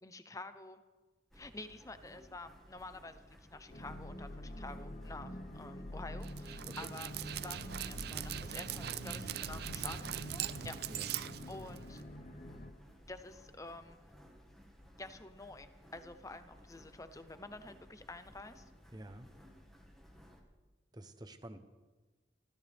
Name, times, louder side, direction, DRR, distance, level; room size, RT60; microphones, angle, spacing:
voice 1, 0.0-0.8 1.3-3.2 3.5-12.0 13.0-14.0 15.0-18.7, left 2 dB, 15° left, 10 dB, 0.8 m, -49 dB
sound 1, 1.3-20.4, equal, ahead, 1.6 m, -59 dB
sound 2, 3.7-12.7, left 1 dB, 40° left, 1.1 m, -46 dB
Dog, 6.2-12.0, right 10 dB, 55° right, 0.4 m, -41 dB
voice 2, 18.9-19.3 20.9-21.6, right 1 dB, 20° right, 8 dB, 0.9 m, -48 dB
27.5 x 13.5 x 3.5 m, 1.3 s
head